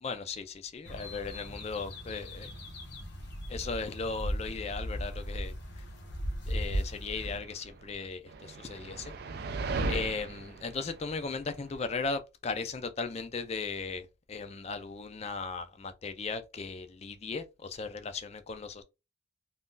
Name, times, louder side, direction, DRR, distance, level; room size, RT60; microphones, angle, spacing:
voice 1, 0.0-2.5 3.5-5.5 6.5-9.1 9.9-18.8, left 4 dB, 30° left, 0.4 m, -37 dB
sound 1, 0.8-7.4, equal, 55° left, 0.8 m, -37 dB
sound 2, 7.2-12.0, right 3 dB, 50° right, 0.3 m, -37 dB
2.6 x 2.3 x 3.7 m
head